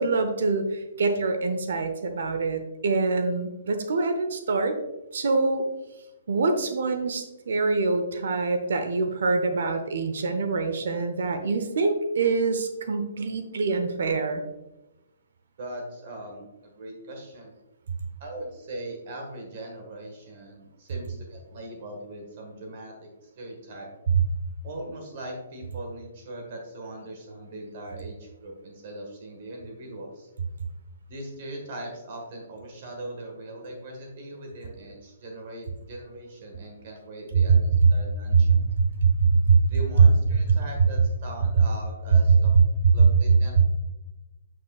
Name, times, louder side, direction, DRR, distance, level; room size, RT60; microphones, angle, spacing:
voice 1, 0.0-4.8 5.1-5.7 6.3-14.4 37.8-37.9 38.3-38.6 39.0-39.6, right 4 dB, 65° right, 7 dB, 0.8 m, -25 dB
voice 2, 15.6-17.5 18.2-23.9 24.6-30.3 31.1-38.7 39.7-42.6 42.9-43.6, right 1 dB, 50° right, 1 dB, 1.5 m, -40 dB
7.5 x 6.3 x 2.4 m, 1.0 s
hypercardioid pair, 135°, 0 cm